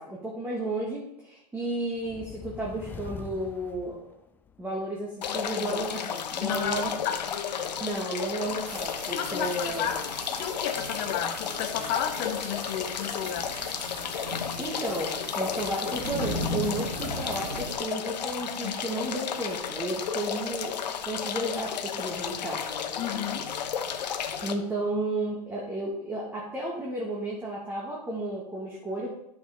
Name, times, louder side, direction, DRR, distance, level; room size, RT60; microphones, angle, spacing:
voice 1, 0.0-4.0 4.6-6.9 7.8-9.9 14.6-22.6 24.4-29.1, right 1 dB, 10° right, -4 dB, 1.6 m, -33 dB
sound 1, 1.9-4.7, left 6 dB, 10° left, 0.3 m, -43 dB
sound 2, 5.2-24.5, left 7 dB, 90° left, 1.0 m, -33 dB
voice 2, 6.4-7.2 7.8-7.9 9.1-10.0 10.4-13.5 18.6-18.7 23.0-23.4, left 9 dB, 40° left, 4 dB, 1.2 m, -32 dB
sound 3, 8.6-17.7, equal, 70° right, 3.2 m, -38 dB
10.0 x 6.4 x 3.5 m, 0.81 s
hypercardioid pair, 135°, 21 cm